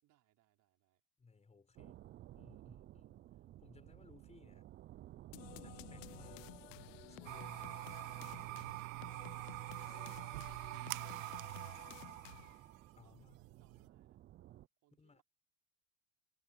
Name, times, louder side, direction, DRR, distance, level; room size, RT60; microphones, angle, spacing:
voice 1, 0.0-1.0 10.0-12.3 13.0-14.2 14.8-15.2, right 16 dB, 50° right, 5.5 m, -75 dB
voice 2, 1.2-2.0 2.3-3.2 3.6-4.7 5.6-6.5 7.1-7.9 8.1-8.6 13.0-13.4 15.0-15.2, left 4 dB, 15° left, 5.2 m, -63 dB
sound 1, 1.8-14.7, right 14 dB, 30° right, 0.5 m, -56 dB
sound 2, 5.3-12.7, left 22 dB, 75° left, 0.6 m, -54 dB
sound 3, 7.2-13.9, right 20 dB, 85° right, 0.6 m, -46 dB
supercardioid pair, 110°, 38 cm